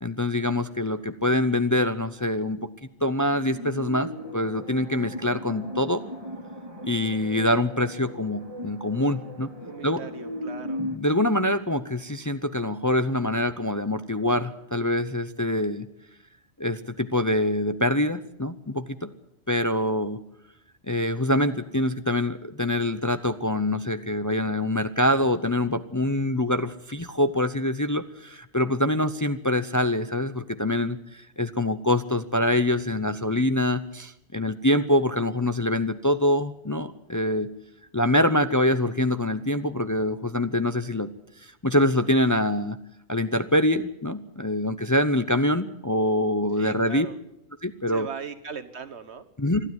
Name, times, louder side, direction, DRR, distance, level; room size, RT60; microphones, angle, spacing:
voice 1, 0.0-2.7 3.0-6.0 6.8-9.5 9.8-10.0 10.8-15.9 16.6-19.1 19.5-20.2 20.9-37.5 37.9-41.1 41.4-42.8 43.1-47.1 47.6-48.1 49.4-49.6, left 1 dB, 20° left, 10 dB, 0.6 m, -25 dB
sound 1, 3.1-11.0, equal, 20° right, 2.1 m, -37 dB
voice 2, 9.7-10.8 46.6-47.2 47.9-49.3, right 6 dB, 75° right, 11 dB, 1.6 m, -38 dB
21.5 x 13.0 x 9.5 m, 0.82 s
omnidirectional pair, 1.1 m